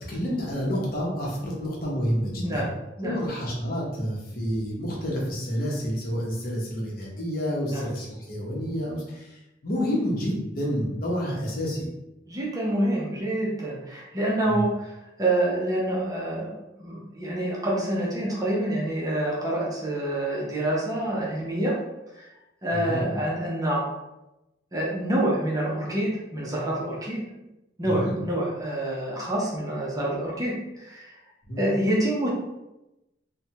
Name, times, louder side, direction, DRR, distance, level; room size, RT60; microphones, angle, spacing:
voice 1, 0.0-2.7 3.0-11.9 14.5-14.6 22.7-23.0 27.8-28.2 31.5-31.7, equal, 50° left, -4 dB, 0.9 m, -29 dB
voice 2, 12.3-14.9 15.2-21.8 22.2-22.3 22.6-23.9 24.7-27.2 27.8-31.1 31.6-32.3, right 1 dB, 20° right, -5 dB, 0.6 m, -27 dB
3.2 x 2.2 x 2.8 m, 0.94 s
head